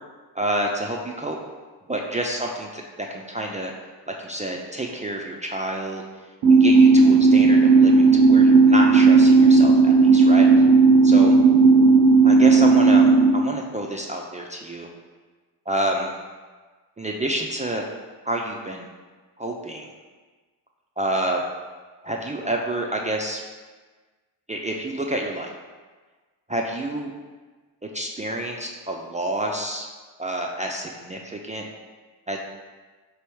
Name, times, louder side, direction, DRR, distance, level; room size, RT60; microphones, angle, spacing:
voice 1, 0.4-1.4 1.9-3.7 4.2-6.0 6.5-10.6 11.0-11.4 12.2-13.1 13.3-14.9 15.7-16.1 17.0-17.8 18.2-18.9 19.4-19.9 21.0-21.4 22.0-23.4 24.5-25.5 26.5-27.1 27.9-29.9 30.2-31.7 32.3-32.4, right 1 dB, 20° right, 0 dB, 0.3 m, -28 dB
sound 1, 6.4-13.3, right 4 dB, 65° right, 0.6 m, -14 dB
3.3 x 3.0 x 4.6 m, 1.4 s
supercardioid pair, 60°, 44 cm